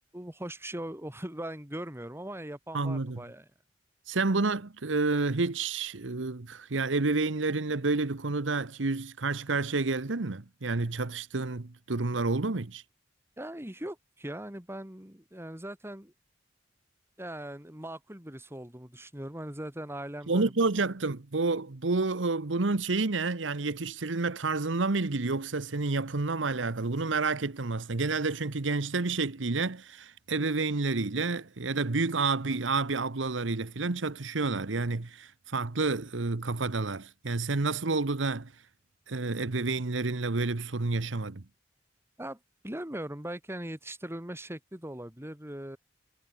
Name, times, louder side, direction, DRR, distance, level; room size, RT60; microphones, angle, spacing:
voice 1, 0.1-3.5 13.4-16.1 17.2-20.5 42.2-42.4 42.6-45.8, right 1 dB, 15° right, 2.9 m, -40 dB
voice 2, 2.7-3.2 4.1-12.8 20.3-38.5 39.1-41.4, right 3 dB, 85° right, 1.1 m, -29 dB
head